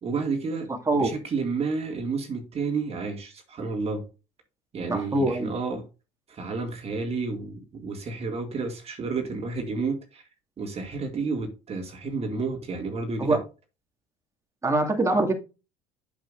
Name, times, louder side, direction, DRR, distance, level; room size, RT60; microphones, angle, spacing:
voice 1, 0.0-4.1 4.7-5.9 6.3-10.2 10.6-13.4, right 4 dB, 40° right, 2.1 m, -31 dB
voice 2, 4.9-5.5 13.2-13.4 14.6-15.3, right 2 dB, 20° right, 2.2 m, -23 dB
7.7 x 7.2 x 2.6 m
supercardioid pair, 85°, 16 cm